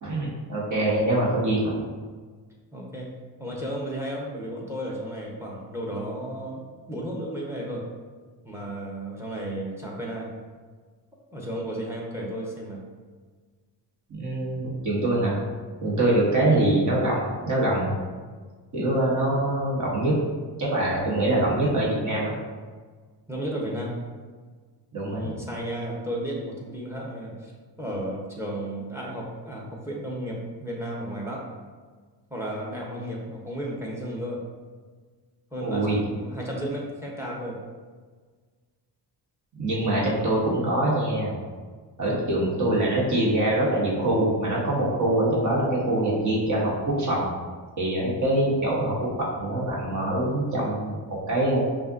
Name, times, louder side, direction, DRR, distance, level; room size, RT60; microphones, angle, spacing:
voice 1, 0.0-1.8 14.1-15.4 15.8-17.9 18.7-20.2 20.6-22.3 24.9-25.4 35.6-36.0 39.6-41.4 42.0-47.3 47.8-51.6, right 1 dB, 45° right, -5 dB, 1.4 m, -24 dB
voice 2, 2.7-3.1 3.4-6.6 6.9-7.8 8.4-10.3 11.3-12.8 16.3-16.6 23.3-23.9 25.1-27.5 27.8-31.5 32.3-34.4 35.5-37.6 42.0-42.2, right 1 dB, 5° right, -2 dB, 1.0 m, -33 dB
5.6 x 2.6 x 2.6 m, 1.5 s
cardioid pair, 100°, 42 cm